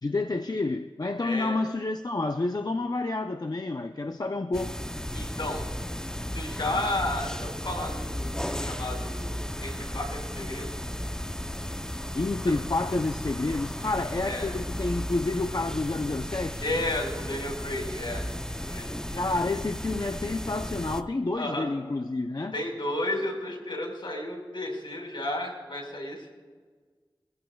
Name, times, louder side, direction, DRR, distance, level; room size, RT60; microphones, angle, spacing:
voice 1, 0.0-4.8 12.1-16.7 19.1-22.5, left 2 dB, 50° left, 6 dB, 0.6 m, -29 dB
voice 2, 1.2-1.6 5.1-5.6 6.3-10.7 14.2-14.5 16.6-18.9 21.3-21.7 22.5-26.3, left 1 dB, 70° left, 1 dB, 4.6 m, -33 dB
sound 1, 4.5-21.0, equal, 10° left, 0.7 m, -34 dB
23.5 x 15.0 x 2.3 m, 1.5 s
wide cardioid pair, 40°, 9 cm